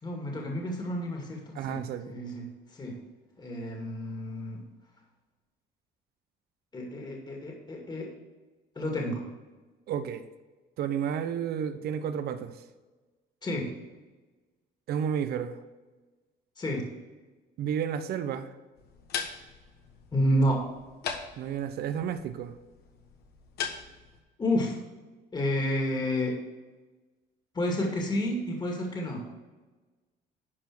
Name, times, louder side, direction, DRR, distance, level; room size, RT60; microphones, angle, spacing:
voice 1, 0.0-2.5 2.7-3.0 3.4-4.6 6.7-8.1 8.8-9.3 13.4-13.7 16.6-16.9 20.1-20.7 24.4-24.8 25.3-26.4 27.5-29.2, equal, 25° left, 0 dB, 2.2 m, -30 dB
voice 2, 1.6-2.1 9.9-10.2 10.8-12.5 14.9-15.6 17.6-18.5 21.4-22.5, right 8 dB, 70° right, 11 dB, 0.9 m, -31 dB
sound 1, 18.8-24.2, left 7 dB, 70° left, 1.4 m, -40 dB
11.5 x 4.8 x 6.2 m, 1.2 s
cardioid pair, 110°, 17 cm